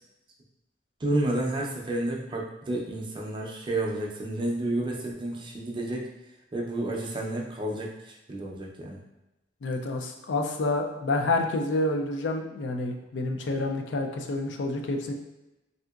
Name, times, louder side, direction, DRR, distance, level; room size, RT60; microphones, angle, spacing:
voice 1, 1.0-6.1 6.5-9.0, right 1 dB, 25° right, -1 dB, 0.5 m, -30 dB
voice 2, 9.6-15.1, left 2 dB, 75° left, 3 dB, 0.4 m, -28 dB
3.5 x 2.7 x 2.3 m, 0.98 s
head